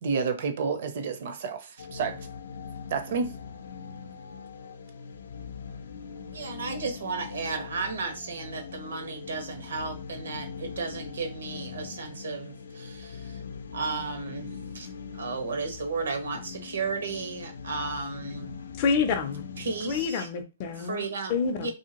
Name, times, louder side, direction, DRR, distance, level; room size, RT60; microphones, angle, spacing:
voice 1, 0.0-2.2 2.9-3.3, right 5 dB, 40° right, 0.5 m, -30 dB
sound 1, 1.8-20.1, left 6 dB, 75° left, 0.5 m, -41 dB
voice 2, 6.3-13.4 13.7-14.5 14.7-14.9 15.1-18.5 19.6-20.3 20.8-21.3 21.6-21.7, right 4 dB, 80° right, 1.1 m, -34 dB
voice 3, 18.8-19.4 19.8-21.7, left 5 dB, 25° left, 0.4 m, -28 dB
2.8 x 2.7 x 2.9 m
hypercardioid pair, 180°, 0 cm